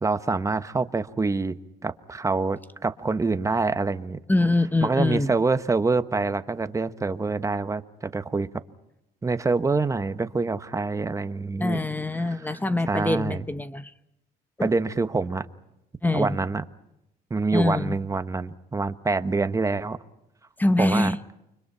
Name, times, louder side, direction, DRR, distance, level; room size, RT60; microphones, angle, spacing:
voice 1, 0.0-4.2 4.8-8.5 9.2-11.8 12.9-13.4 14.6-15.5 16.1-16.6 17.3-20.0 20.8-21.1, right 3 dB, 20° right, 1.2 m, -26 dB
voice 2, 4.3-5.3 11.6-13.9 14.6-14.7 16.0-16.4 17.5-17.9 20.6-21.2, left 2 dB, 10° left, 0.9 m, -24 dB
29.5 x 25.0 x 5.7 m
cardioid pair, 110°, 17 cm